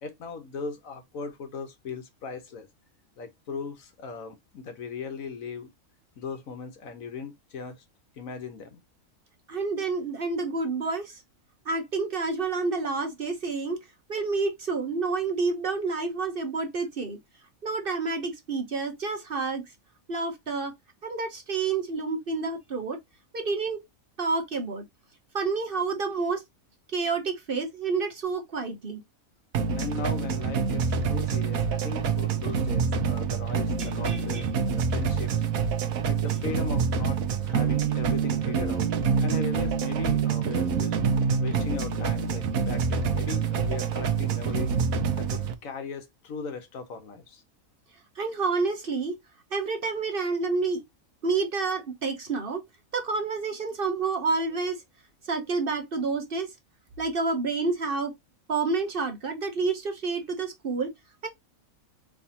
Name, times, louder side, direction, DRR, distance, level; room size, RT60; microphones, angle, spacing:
voice 1, 0.0-2.7 3.2-5.7 6.2-7.8 8.1-8.8 29.7-35.3 36.1-38.9 39.2-41.0 41.4-44.7 45.2-47.4, left 5 dB, 75° left, 1.4 m, -38 dB
voice 2, 9.5-11.2 11.7-13.8 14.1-17.2 17.6-19.6 20.1-20.7 21.0-23.0 23.3-23.8 24.2-24.8 25.3-26.4 26.9-29.0 33.8-34.4 48.2-49.1 49.5-50.8 51.2-52.6 52.9-54.8 55.3-56.5 57.0-58.1 58.5-60.9 61.2-61.3, right 4 dB, 45° right, 1.1 m, -29 dB
sound 1, 29.5-45.5, right 6 dB, 85° right, 1.2 m, -26 dB
4.7 x 3.4 x 2.8 m
omnidirectional pair, 1.4 m